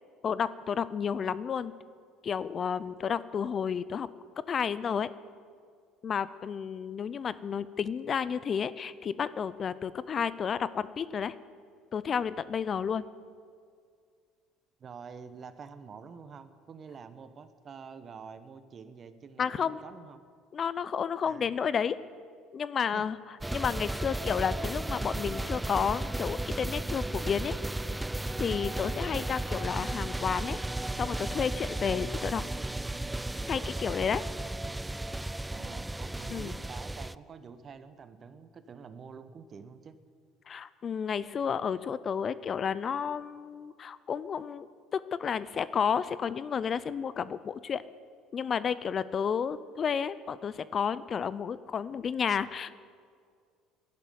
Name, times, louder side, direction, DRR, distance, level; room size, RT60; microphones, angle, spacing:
voice 1, 0.2-1.7 2.2-4.1 4.5-5.1 6.0-11.3 11.9-13.0 19.4-19.8 20.5-22.0 22.5-23.2 23.5-27.6 28.4-30.6 31.0-32.4 33.5-34.2 36.3-36.6 40.5-44.7 44.9-47.8 48.3-52.7, left 7 dB, 40° left, 16 dB, 0.5 m, -31 dB
voice 2, 14.8-20.2 21.2-21.6 22.9-23.0 28.8-29.2 35.5-40.0, right 6 dB, 40° right, 11 dB, 1.1 m, -47 dB
sound 1, 23.4-37.2, right 1 dB, 10° right, 0.4 m, -34 dB
12.0 x 11.5 x 9.3 m, 2.1 s
supercardioid pair, 85°, 0 cm